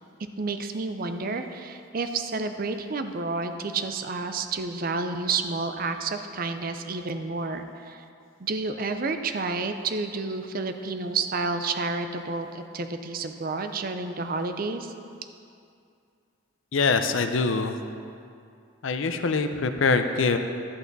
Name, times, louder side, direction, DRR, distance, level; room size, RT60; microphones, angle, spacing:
voice 1, 0.4-8.0 8.4-14.9, right 3 dB, 45° right, 7 dB, 0.5 m, -30 dB
voice 2, 16.7-17.7 18.8-20.4, left 4 dB, 75° left, 7 dB, 0.6 m, -24 dB
11.5 x 8.3 x 4.0 m, 2.5 s
head